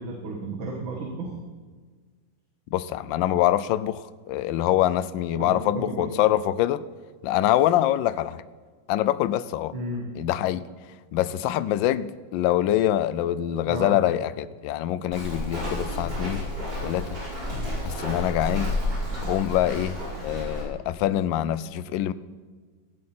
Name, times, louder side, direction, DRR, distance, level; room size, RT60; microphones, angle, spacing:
voice 1, 0.0-1.4 5.4-6.1 9.7-10.1 13.7-14.0, right 2 dB, 80° right, 1 dB, 2.4 m, -33 dB
voice 2, 2.7-6.8 7.2-8.4 8.9-9.7 10.2-10.7 11.1-16.4 16.8-17.1 17.8-18.7 19.2-22.1, left 12 dB, 75° left, 16 dB, 1.3 m, -25 dB
Walk footsteps, 15.1-20.6, left 1 dB, 55° right, 5.6 m, -31 dB
17.5 x 13.0 x 4.3 m, 1.5 s
omnidirectional pair, 2.1 m